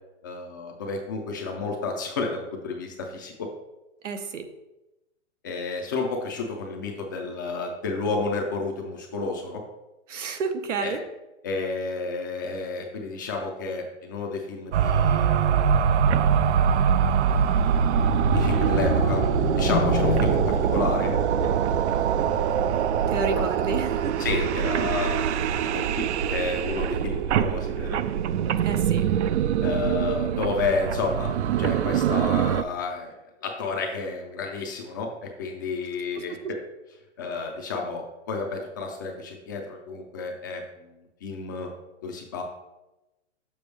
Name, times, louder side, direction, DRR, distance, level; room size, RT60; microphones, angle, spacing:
voice 1, 0.2-3.5 5.4-9.6 10.8-11.0 11.4-15.8 18.3-19.2 19.5-22.2 23.3-23.4 24.2-28.0 29.6-31.3 31.6-33.1 33.4-36.6 37.2-41.7 42.0-42.4, left 4 dB, 20° left, 1 dB, 0.3 m, -31 dB
voice 2, 4.0-4.4 10.1-11.0 23.1-24.2 28.6-29.0, right 5 dB, 85° right, 7 dB, 1.0 m, -30 dB
sound 1, 14.7-32.6, right 8 dB, 70° right, 0.5 m, -23 dB
sound 2, 17.8-23.6 24.0-24.2 24.6-24.7, left 8 dB, 50° left, 0.7 m, -31 dB
6.9 x 5.9 x 3.2 m, 0.99 s
hypercardioid pair, 145°, 36 cm